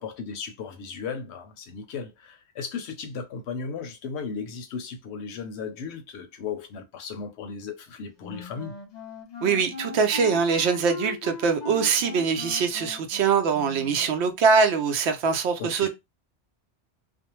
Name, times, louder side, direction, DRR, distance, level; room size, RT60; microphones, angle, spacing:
voice 1, 0.0-8.8 15.6-15.9, left 5 dB, 80° left, 0.9 m, -36 dB
Wind instrument woodwind instrument, 8.2-14.1, left 5 dB, 50° left, 0.6 m, -39 dB
voice 2, 9.4-15.9, right 5 dB, 80° right, 0.8 m, -23 dB
2.5 x 2.0 x 2.9 m
omnidirectional pair, 1.1 m